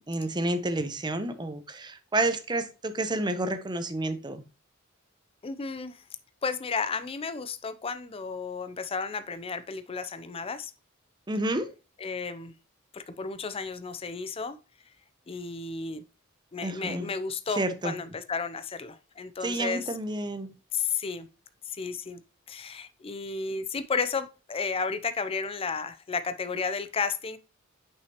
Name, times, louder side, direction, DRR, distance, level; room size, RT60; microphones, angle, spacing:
voice 1, 0.1-4.4 11.3-11.7 16.6-17.1 17.6-17.9 19.4-20.5, right 2 dB, 20° right, 0.7 m, -30 dB
voice 2, 5.4-6.0 6.4-10.7 12.0-12.5 12.9-14.6 15.3-16.0 16.5-19.9 20.7-21.3 21.6-22.2 22.5-27.4, left 5 dB, 25° left, 0.4 m, -33 dB
6.1 x 5.6 x 2.9 m
head